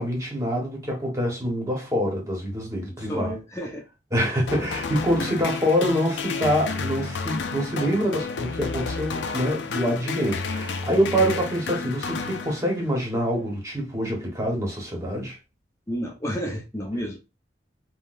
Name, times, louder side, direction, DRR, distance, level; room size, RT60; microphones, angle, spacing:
voice 1, 0.0-3.3 4.1-15.4, equal, 20° right, 1.1 m, -25 dB
voice 2, 2.8-3.8 5.2-5.3 11.1-11.3 15.9-17.2, equal, 15° left, 0.7 m, -31 dB
sound 1, 4.5-13.0, left 4 dB, 75° left, 0.4 m, -31 dB
3.7 x 2.2 x 2.5 m
head